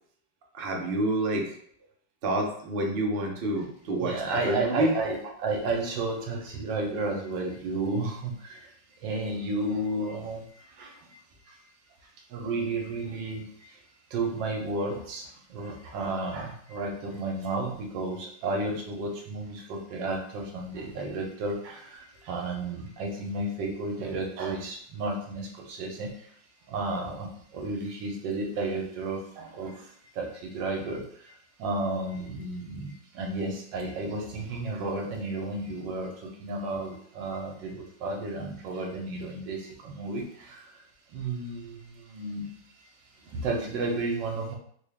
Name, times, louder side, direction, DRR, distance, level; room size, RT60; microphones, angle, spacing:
voice 1, 0.5-1.5 2.2-5.1, right 1 dB, 65° right, 1 dB, 0.5 m, -28 dB
voice 2, 4.0-8.7 9.0-11.2 11.5-11.6 12.3-13.8 14.1-26.3 26.7-40.8 41.1-42.5 43.2-44.5, right 2 dB, 90° right, 2 dB, 1.4 m, -32 dB
3.7 x 2.3 x 3.3 m, 0.62 s
omnidirectional pair, 1.9 m